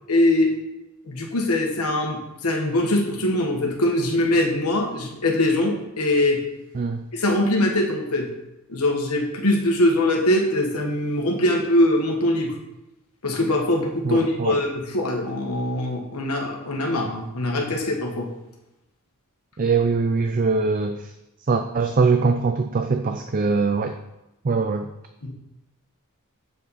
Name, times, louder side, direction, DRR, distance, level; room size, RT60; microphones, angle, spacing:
voice 1, 0.1-0.5 1.0-6.4 7.1-8.3 8.7-12.5 13.2-18.3 25.2-25.3, left 1 dB, 80° left, 0 dB, 1.4 m, -22 dB
voice 2, 14.0-14.6 19.6-21.1 21.5-23.9 24.4-24.9, right 4 dB, 40° right, 6 dB, 0.4 m, -22 dB
7.2 x 7.1 x 4.1 m, 0.94 s
head